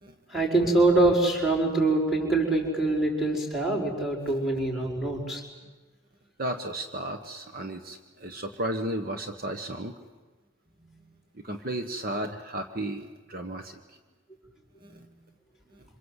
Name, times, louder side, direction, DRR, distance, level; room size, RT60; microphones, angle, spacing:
voice 1, 0.3-5.4 10.7-11.0 14.8-15.0, right 2 dB, ahead, 1 dB, 5.5 m, -25 dB
voice 2, 6.4-9.9 11.4-13.8 14.8-15.0 15.7-15.8, right 1 dB, 45° right, 6 dB, 1.3 m, -34 dB
27.0 x 26.5 x 8.2 m, 1.3 s
head